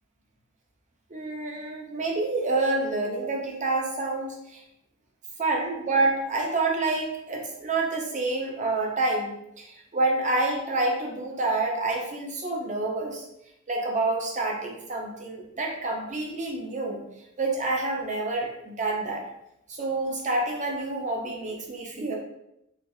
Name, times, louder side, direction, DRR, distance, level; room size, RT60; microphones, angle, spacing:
voice 1, 1.1-4.6 5.4-13.3 13.7-17.0 17.4-19.2 19.7-22.1, right 2 dB, 35° right, 0 dB, 0.6 m, -28 dB
3.2 x 3.0 x 2.6 m, 0.82 s
head